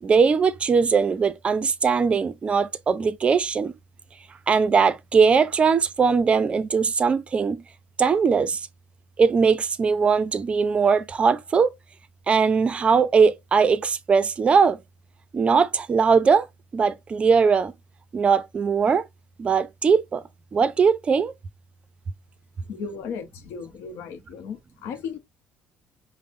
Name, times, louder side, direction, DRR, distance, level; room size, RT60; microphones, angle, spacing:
voice 1, 0.0-3.7 4.5-7.6 8.0-8.6 9.2-11.7 12.3-14.8 15.3-16.5 16.7-17.7 18.1-19.0 19.4-20.2 20.5-21.3, right 5 dB, 30° right, 0.4 m, -20 dB
voice 2, 22.7-25.2, left 6 dB, 80° left, 0.7 m, -35 dB
5.2 x 2.0 x 2.5 m
cardioid pair, 140°, 4 cm